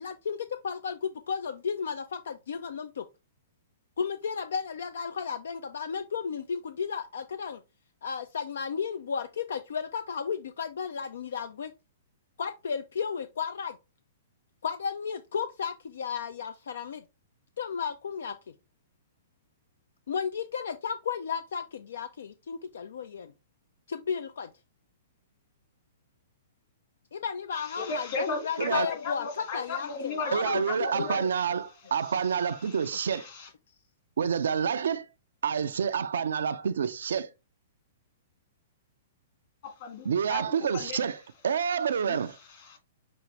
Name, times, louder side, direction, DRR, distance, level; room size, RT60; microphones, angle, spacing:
voice 1, 0.0-3.0 4.0-7.6 8.0-11.7 12.4-13.8 14.6-17.0 17.6-18.4 20.1-23.3 23.9-24.5 27.1-31.2, left 6 dB, 65° left, 0.3 m, -33 dB
voice 2, 27.5-31.2 32.0-32.3 32.6-33.5 39.6-41.0 42.0-42.8, left 4 dB, 50° left, 1.9 m, -37 dB
voice 3, 30.3-33.2 34.2-35.1 35.4-37.3 40.0-42.4, right 7 dB, 70° right, 0.4 m, -28 dB
6.0 x 2.6 x 3.2 m
figure-of-eight pair, 110°, 0 cm